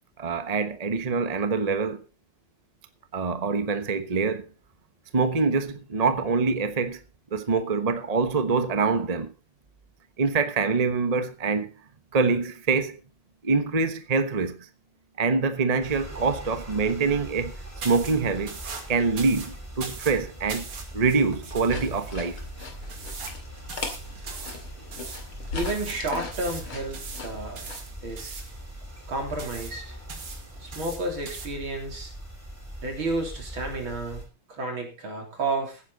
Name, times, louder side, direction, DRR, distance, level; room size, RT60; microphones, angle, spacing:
voice 1, 0.2-2.0 3.1-4.5 5.1-7.0 7.3-9.3 10.2-11.7 12.1-13.0 13.4-14.7 15.2-17.6 17.8-18.6 18.9-20.7 20.9-22.4 24.3-24.5, right 4 dB, 25° right, 0.8 m, -25 dB
sound 1, 15.8-34.3, right 1 dB, 5° right, 5.1 m, -41 dB
sound 2, 17.8-31.5, right 5 dB, 90° right, 3.2 m, -41 dB
sound 3, 21.7-27.8, left 5 dB, 80° left, 3.1 m, -39 dB
voice 2, 25.5-27.6 28.0-28.3 29.1-30.0 30.6-32.1 32.8-34.2 34.5-35.8, right 2 dB, 70° right, 4.3 m, -31 dB
16.0 x 9.9 x 4.0 m
omnidirectional pair, 2.3 m